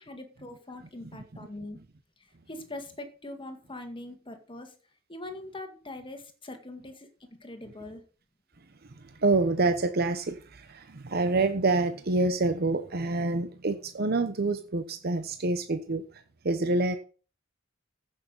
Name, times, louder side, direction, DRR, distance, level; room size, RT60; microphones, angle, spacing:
voice 1, 0.0-1.8 2.2-4.8 5.1-8.0, left 2 dB, 25° left, 1.9 m, -42 dB
voice 2, 9.2-16.0 16.4-17.0, right 3 dB, 55° right, 0.9 m, -27 dB
15.0 x 6.6 x 5.4 m
head